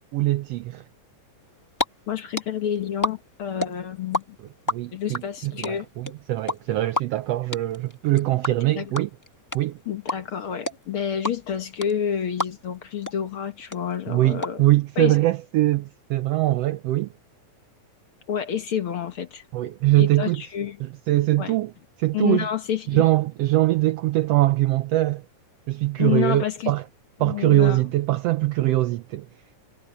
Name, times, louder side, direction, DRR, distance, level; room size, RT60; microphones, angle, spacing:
voice 1, 0.1-0.8 4.7-9.1 9.5-9.8 14.1-17.1 19.5-20.4 20.8-21.7 22.0-22.5 22.9-25.2 25.7-26.8 27.2-29.3, right 16 dB, 75° right, 1.5 m, -22 dB
sound 1, 1.5-1.9 2.1-4.2 4.5-12.8 13.1-13.2 13.4-14.5, left 1 dB, 15° left, 0.6 m, -28 dB
voice 2, 2.1-4.4 4.9-5.9 8.8-9.0 9.9-14.6 15.0-15.2 18.3-19.4 20.0-20.8 21.4-21.6 22.1-23.1 26.0-26.7 27.2-27.8, left 9 dB, 55° left, 1.8 m, -28 dB
omnidirectional pair, 3.4 m